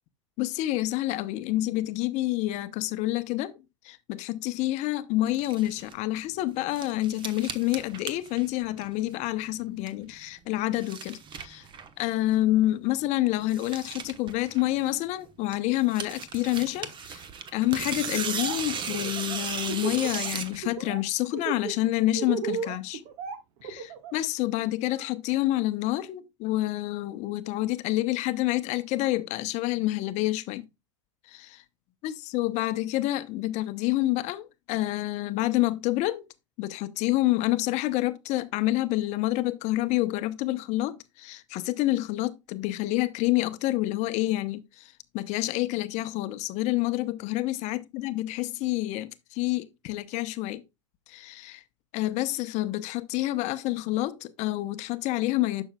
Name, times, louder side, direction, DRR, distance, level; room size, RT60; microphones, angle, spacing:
voice 1, 0.4-11.7 12.0-17.2 17.5-23.0 23.6-30.7 31.3-31.6 32.0-36.2 36.6-50.6 51.1-51.6 51.9-55.6, left 16 dB, 45° left, 0.7 m, -28 dB
sound 1, 5.3-5.9 6.4-9.2 9.5-10.1 10.5-12.0 12.3-12.4 12.7-12.8 13.0-13.1 13.3-15.1 15.5-20.6, right 6 dB, 30° right, 1.2 m, -36 dB
Laughter, 18.1-18.6 18.9-20.3 20.6-21.0 21.3-24.2, right 6 dB, 55° right, 1.5 m, -34 dB
11.0 x 6.3 x 2.3 m
hypercardioid pair, 95°, 16 cm